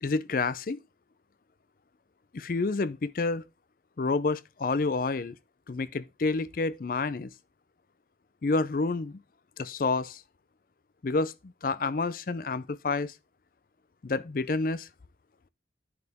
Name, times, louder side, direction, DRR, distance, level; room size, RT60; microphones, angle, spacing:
voice 1, 0.0-0.8 2.3-3.4 4.0-5.4 5.7-7.3 8.4-9.2 9.6-10.2 11.0-13.1 14.0-14.9, left 3 dB, 50° left, 0.5 m, -29 dB
9.7 x 4.8 x 3.5 m
head